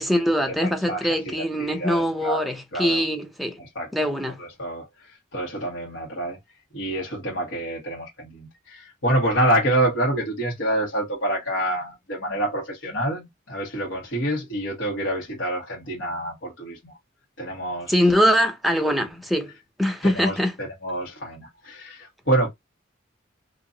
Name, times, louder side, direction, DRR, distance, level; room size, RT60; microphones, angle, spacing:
voice 1, 0.0-3.6 3.9-4.4 17.9-19.5 19.8-20.5, equal, ahead, 0.7 m, -22 dB
voice 2, 0.6-3.0 3.6-3.9 4.4-4.8 5.3-6.4 6.7-16.9 17.4-17.9 20.0-22.5, right 1 dB, 75° left, 1.5 m, -27 dB
2.9 x 2.6 x 3.8 m
head